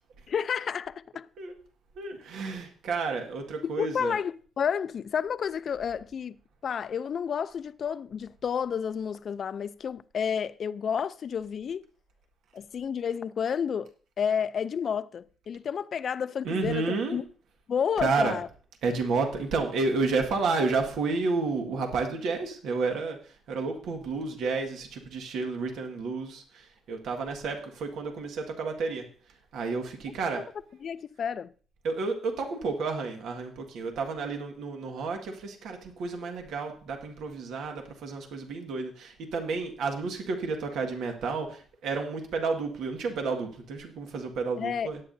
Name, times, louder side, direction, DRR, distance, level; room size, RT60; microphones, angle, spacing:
voice 1, 0.3-1.3 3.6-6.4 6.6-11.9 12.5-17.2 17.7-18.5 30.8-31.5 44.6-44.9, left 7 dB, 55° left, 0.4 m, -31 dB
voice 2, 2.0-4.2 16.4-17.2 18.0-18.4 18.8-29.0 29.5-30.4 31.8-45.0, right 4 dB, 80° right, 1.7 m, -31 dB
18.0 x 9.0 x 2.7 m
cardioid pair, 90°, 0 cm